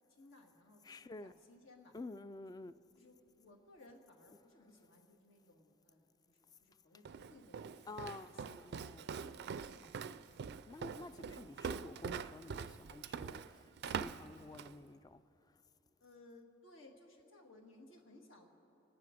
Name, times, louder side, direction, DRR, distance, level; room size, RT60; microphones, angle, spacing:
voice 1, 0.1-2.0 3.0-8.7 9.7-10.0 16.0-18.5, left 2 dB, 75° left, 1.8 m, -61 dB
voice 2, 0.8-1.3 1.9-2.8 7.9-9.1 10.6-15.6, left 2 dB, 20° left, 0.3 m, -50 dB
Walk footsteps, 7.0-14.8, right 6 dB, 55° right, 0.4 m, -44 dB
27.0 x 9.8 x 5.1 m
head